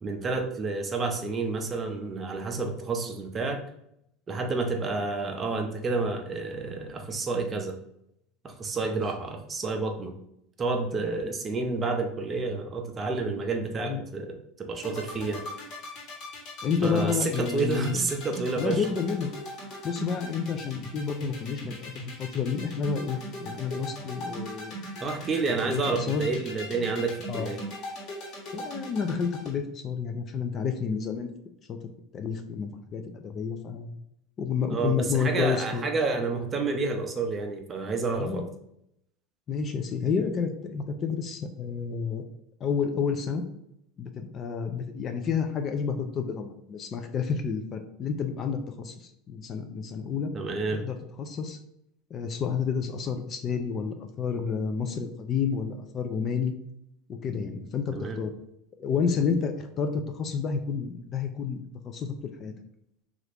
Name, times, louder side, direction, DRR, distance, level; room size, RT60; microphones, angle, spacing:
voice 1, 0.0-3.6 4.3-7.8 8.4-10.2 10.6-15.5 16.8-18.9 25.0-27.6 34.7-38.5 50.3-50.8 57.9-58.2, right 3 dB, 25° right, 4 dB, 0.5 m, -29 dB
sound 1, 14.7-29.5, left 1 dB, 55° left, 1.2 m, -39 dB
voice 2, 16.6-18.0 18.6-19.3 19.8-21.9 22.2-24.7 25.7-26.3 27.3-27.5 28.5-31.3 31.7-33.9 34.4-35.9 38.2-38.4 39.5-42.2 42.6-43.4 44.0-50.3 50.7-51.6 52.1-56.5 57.1-58.3 58.8-62.5, left 6 dB, 35° left, 6 dB, 0.4 m, -30 dB
2.9 x 2.4 x 3.3 m, 0.77 s
supercardioid pair, 130°, 0 cm